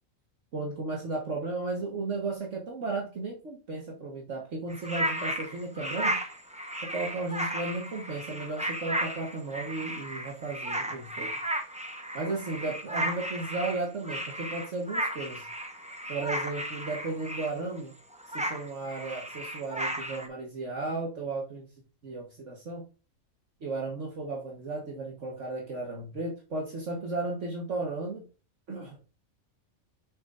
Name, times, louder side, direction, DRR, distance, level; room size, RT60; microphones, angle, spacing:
voice 1, 0.5-6.2 6.8-11.3 12.1-15.5 16.1-17.9 18.3-21.7 22.0-22.8 23.6-28.2 28.7-29.0, right 3 dB, 60° right, 0 dB, 1.7 m, -34 dB
sound 1, 4.7-17.8 18.1-20.3, right 1 dB, 5° right, 0.9 m, -34 dB
6.7 x 6.6 x 2.5 m, 0.34 s
omnidirectional pair, 1.4 m